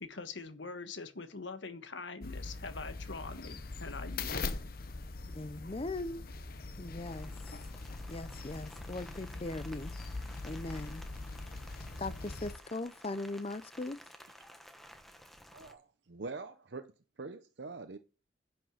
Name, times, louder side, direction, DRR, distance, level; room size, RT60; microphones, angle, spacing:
voice 1, 0.0-4.4, left 4 dB, 70° left, 1.3 m, -43 dB
sound 1, 2.2-12.6, left 3 dB, 50° left, 0.9 m, -42 dB
voice 2, 5.3-6.2 6.8-7.3 8.1-9.9 10.4-11.0 12.0-14.0, left 2 dB, 30° left, 0.6 m, -39 dB
Rain, 7.1-15.7, equal, ahead, 1.1 m, -54 dB
voice 3, 15.5-16.9 17.2-18.0, right 3 dB, 60° right, 0.7 m, -44 dB
10.5 x 6.2 x 6.4 m
head